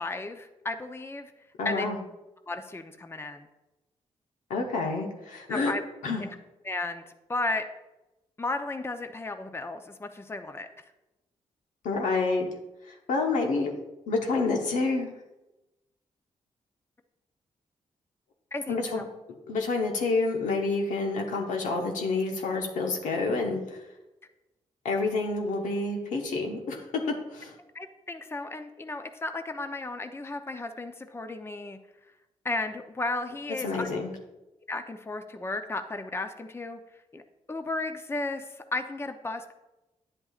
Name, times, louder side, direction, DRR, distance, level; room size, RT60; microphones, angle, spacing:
voice 1, 0.0-1.3 1.6-1.9 2.5-3.5 5.5-5.8 6.2-6.4 6.6-7.0 7.3-7.6 8.4-10.7 18.5-19.1 27.7-31.8 32.4-33.9 34.7-36.8 37.1-37.2 37.5-39.5, left 2 dB, 20° left, 7 dB, 0.7 m, -34 dB
voice 2, 1.6-2.0 4.5-5.7 6.0-6.2 11.8-12.5 12.9-13.7 14.1-15.1 18.7-19.1 19.5-23.6 24.8-27.5 33.6-34.1, left 3 dB, 85° left, 1 dB, 1.2 m, -28 dB
9.7 x 7.9 x 2.4 m, 1.0 s
cardioid pair, 65°, 13 cm